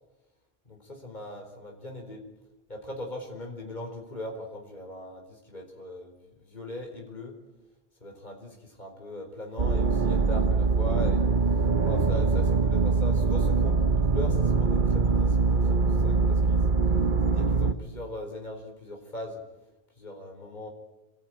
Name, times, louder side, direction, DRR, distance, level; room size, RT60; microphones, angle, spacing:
voice 1, 0.7-2.2 2.7-7.4 8.0-16.7 17.3-19.4 20.0-20.7, left 1 dB, 45° left, 1 dB, 4.6 m, -40 dB
sound 1, 9.6-17.7, right 4 dB, 50° right, 1.2 m, -23 dB
27.5 x 21.0 x 9.2 m, 0.99 s
omnidirectional pair, 1.1 m